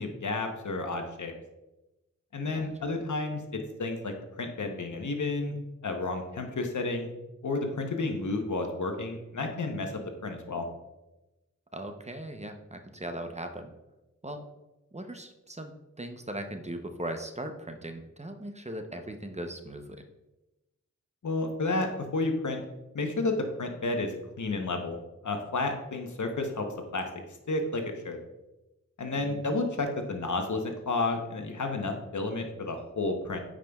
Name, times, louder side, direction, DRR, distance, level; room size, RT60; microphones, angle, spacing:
voice 1, 0.0-1.3 2.3-5.6 5.8-7.1 7.4-9.9 10.2-10.7 21.2-22.6 22.9-25.0 25.2-26.7 26.9-27.1 27.5-28.2 29.0-33.4, left 3 dB, 75° left, 4 dB, 0.9 m, -31 dB
voice 2, 2.5-2.9 11.7-13.7 14.2-14.4 14.9-20.0 29.1-29.5, right 1 dB, 20° right, 6 dB, 0.7 m, -39 dB
9.0 x 5.0 x 2.3 m, 1.0 s
wide cardioid pair, 45°, 30 cm